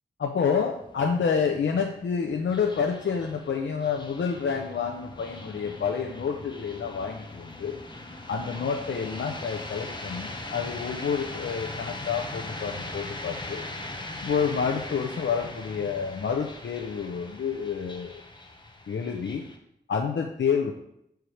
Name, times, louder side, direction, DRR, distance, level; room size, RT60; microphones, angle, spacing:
voice 1, 0.2-7.8 8.3-13.6 14.2-18.2 18.9-19.4 19.9-20.7, left 6 dB, 80° left, 1 dB, 0.6 m, -28 dB
sound 1, 0.6-19.6, left 2 dB, 25° left, 0.9 m, -40 dB
6.6 x 4.6 x 4.9 m, 0.77 s
wide cardioid pair, 95°, 19 cm